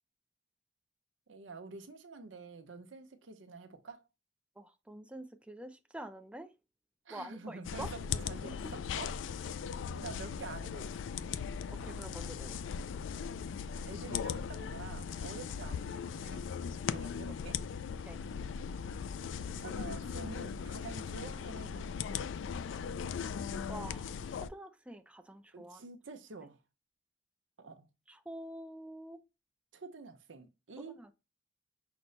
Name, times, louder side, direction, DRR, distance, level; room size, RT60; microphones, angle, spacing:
voice 1, 1.3-4.0 7.1-9.1 9.4-9.6 9.9-10.9 13.8-17.6 19.6-22.3 25.5-26.6 27.6-27.9 29.7-30.9, right 4 dB, 90° right, 0.9 m, -48 dB
voice 2, 4.6-6.5 7.1-7.9 8.4-8.5 11.8-12.6 15.3-15.4 18.0-18.2 23.7-25.8 28.1-29.2 30.8-31.1, right 1 dB, 5° right, 0.4 m, -47 dB
sound 1, 7.6-24.5, left 6 dB, 75° left, 0.3 m, -39 dB
6.0 x 2.1 x 3.9 m
head